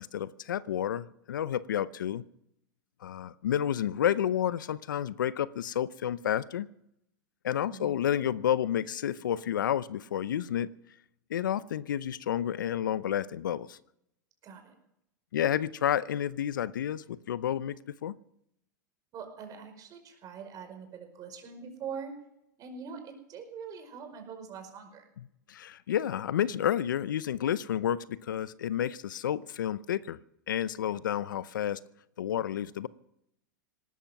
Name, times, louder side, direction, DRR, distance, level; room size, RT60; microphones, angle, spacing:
voice 1, 0.0-2.2 3.0-6.7 7.4-10.7 11.3-13.8 15.3-17.8 18.0-18.1 25.2-30.2 30.5-31.8 32.2-32.9, left 10 dB, 80° left, 18 dB, 0.7 m, -30 dB
voice 2, 14.4-14.8 19.1-22.1 22.6-25.1, right 6 dB, 35° right, 5 dB, 5.1 m, -43 dB
18.5 x 13.0 x 6.0 m, 0.79 s
hypercardioid pair, 110°, 10 cm